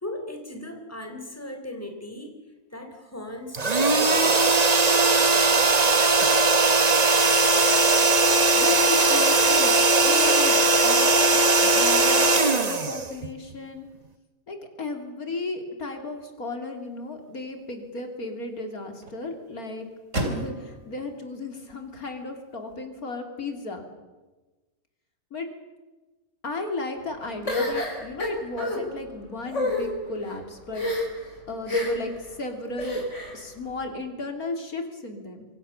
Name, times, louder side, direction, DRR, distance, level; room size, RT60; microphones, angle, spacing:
voice 1, 0.0-2.3 2.7-4.6, left 1 dB, 10° left, 4 dB, 3.5 m, -38 dB
sound 1, 3.5-13.5, right 3 dB, 30° right, 1.1 m, -19 dB
voice 2, 8.5-13.9 14.5-19.9 20.2-23.8 25.3-25.5 26.4-31.2 31.5-33.0 33.3-35.5, left 2 dB, 85° left, 4 dB, 3.7 m, -34 dB
sound 2, 16.6-22.8, right 1 dB, 55° right, 4.2 m, -38 dB
sound 3, 27.5-28.8 29.5-29.8 30.7-31.2 31.7-32.1 32.8-33.4, left 2 dB, 55° left, 6.3 m, -28 dB
26.5 x 24.0 x 7.2 m, 1.2 s
omnidirectional pair, 1.5 m